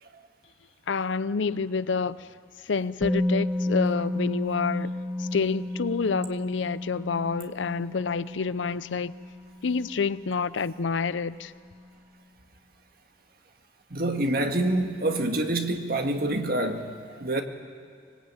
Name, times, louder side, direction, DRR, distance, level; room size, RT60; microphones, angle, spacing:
voice 1, 0.9-2.2 2.7-4.9 5.2-9.1 9.6-11.5, left 5 dB, 80° left, 17 dB, 0.6 m, -28 dB
Musical instrument, 3.0-10.9 11.2-11.4, left 1 dB, 5° right, 1.5 m, -32 dB
voice 2, 13.9-17.4, right 1 dB, 50° right, 5 dB, 1.8 m, -27 dB
24.5 x 21.0 x 8.9 m, 2.1 s
head